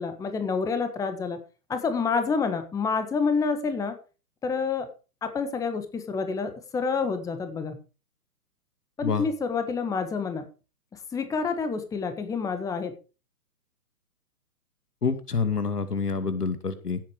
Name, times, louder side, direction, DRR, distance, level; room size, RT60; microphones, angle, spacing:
voice 1, 0.0-1.4 1.7-3.9 4.4-4.9 5.2-7.8 9.0-10.4 11.1-12.9, left 5 dB, 5° left, 9 dB, 1.4 m, -28 dB
voice 2, 15.0-17.0, left 5 dB, 80° left, 11 dB, 2.5 m, -27 dB
17.0 x 8.0 x 5.0 m, 0.34 s
figure-of-eight pair, 130°, 46 cm